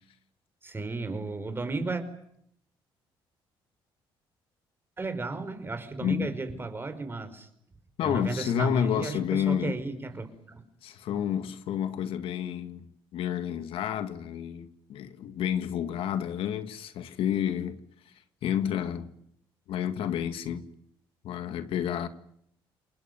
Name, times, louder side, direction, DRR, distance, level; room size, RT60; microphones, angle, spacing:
voice 1, 0.6-2.0 5.0-7.5 8.0-10.6, right 3 dB, 25° right, 5.0 m, -34 dB
voice 2, 8.0-9.7 10.8-12.9 13.1-17.8 18.4-19.1 19.7-20.6 21.2-22.1, left 9 dB, 75° left, 2.0 m, -30 dB
29.0 x 21.0 x 9.4 m
cardioid pair, 100°, 9 cm